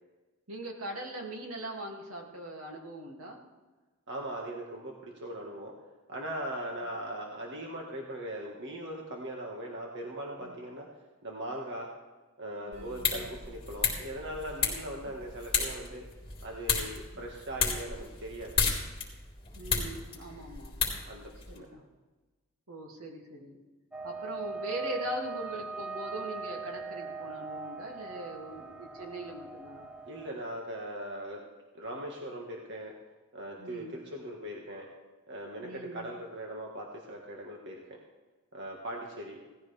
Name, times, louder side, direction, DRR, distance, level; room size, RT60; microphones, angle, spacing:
voice 1, 0.5-3.4 10.4-10.6 12.7-13.3 15.1-15.2 19.6-20.7 21.5-21.8 22.7-23.6 24.0-29.9 33.6-34.0 35.6-36.1, right 1 dB, 75° right, 0 dB, 2.5 m, -41 dB
voice 2, 4.1-5.7 6.1-10.9 11.2-11.9 12.4-16.0 16.4-18.5 21.1-21.7 30.1-31.4 31.7-32.9 33.3-34.9 35.3-38.0 38.5-39.4, right 1 dB, 55° right, -1 dB, 1.7 m, -40 dB
sound 1, 12.7-21.6, left 5 dB, 25° left, 3.6 m, -33 dB
sound 2, 23.9-30.3, right 4 dB, 5° right, 0.6 m, -40 dB
18.0 x 14.5 x 3.5 m, 1.2 s
head